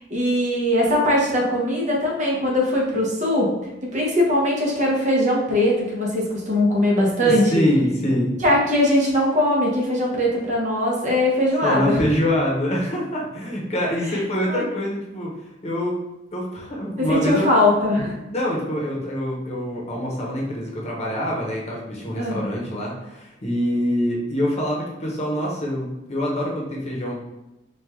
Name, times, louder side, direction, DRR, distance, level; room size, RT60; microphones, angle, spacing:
voice 1, 0.1-3.5 3.8-7.6 8.4-12.0 14.5-14.6 17.0-18.2 22.2-22.4, left 1 dB, 40° right, -2 dB, 1.0 m, -20 dB
voice 2, 7.2-8.4 11.6-16.0 16.3-17.4 18.3-27.2, equal, 35° left, -3 dB, 1.0 m, -25 dB
4.6 x 2.5 x 3.6 m, 0.93 s
head